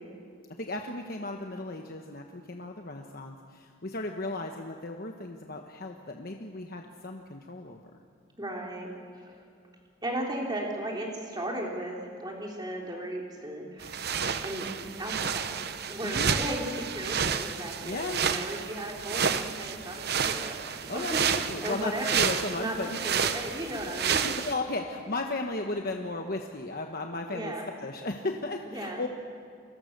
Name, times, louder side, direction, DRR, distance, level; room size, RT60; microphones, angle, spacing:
voice 1, 0.6-7.8 16.0-16.3 17.8-18.2 20.9-23.0 23.5-23.6 24.2-27.5 27.8-29.1, left 2 dB, 45° left, 3 dB, 1.2 m, -35 dB
voice 2, 8.4-8.9 9.2-9.4 10.0-14.0 14.4-14.7 15.0-21.2 21.6-24.2 27.3-27.7 28.7-29.1, right 1 dB, 20° right, -1 dB, 3.7 m, -36 dB
sound 1, 13.8-24.5, right 7 dB, 50° right, 0.9 m, -30 dB
29.0 x 22.0 x 6.7 m, 2.2 s
head